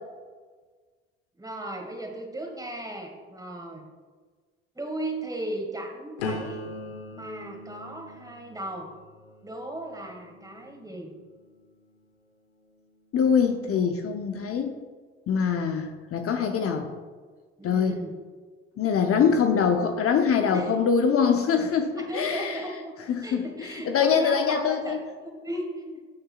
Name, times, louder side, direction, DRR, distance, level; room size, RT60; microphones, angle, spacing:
voice 1, 1.4-3.9 4.7-6.6 7.1-8.9 9.4-11.2 17.6-18.1 20.5-20.7 21.9-22.9 23.2-25.0 25.4-26.0, right 1 dB, 10° right, 1 dB, 2.1 m, -36 dB
sound 1, 6.2-12.0 12.6-13.0, left 2 dB, 85° left, 0.8 m, -41 dB
voice 2, 13.1-14.7 15.3-16.9 17.6-18.0 18.8-22.6 23.1-25.0, left 6 dB, 50° left, 5 dB, 0.8 m, -24 dB
12.5 x 6.5 x 2.4 m, 1.5 s
hypercardioid pair, 50°, 30 cm